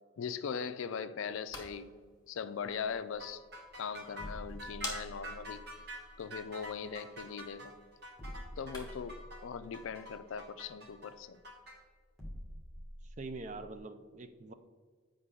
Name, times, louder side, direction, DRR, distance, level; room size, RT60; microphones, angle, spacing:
voice 1, 0.2-1.9 2.3-3.4 3.8-5.6 6.2-7.7 8.6-11.4, left 6 dB, 70° left, 12 dB, 0.4 m, -40 dB
sound 1, 1.2-9.2, left 3 dB, 20° left, 1.3 m, -51 dB
sound 2, 2.8-13.8, equal, ahead, 1.6 m, -50 dB
sound 3, 3.2-11.8, right 1 dB, 50° right, 1.3 m, -47 dB
voice 2, 13.0-14.5, right 3 dB, 35° right, 9 dB, 0.4 m, -44 dB
8.2 x 5.2 x 3.7 m, 1.5 s
head